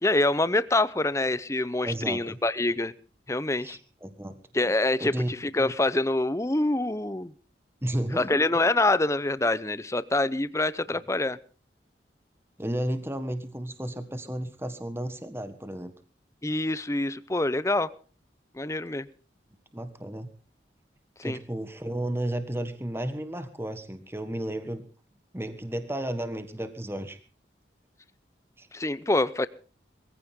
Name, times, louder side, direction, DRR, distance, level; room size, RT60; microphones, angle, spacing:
voice 1, 0.0-2.9 3.3-3.8 4.5-5.1 5.4-7.3 8.2-11.4 16.4-17.9 18.6-19.1 21.2-21.4 28.7-29.5, left 2 dB, 15° left, 16 dB, 0.7 m, -25 dB
voice 2, 1.8-2.4 3.6-4.4 5.0-5.3 7.8-8.4 12.6-15.9 19.7-20.3 21.2-24.9 25.3-27.2 28.6-28.7, right 1 dB, 15° right, 9 dB, 1.5 m, -33 dB
22.5 x 15.5 x 3.7 m, 0.39 s
head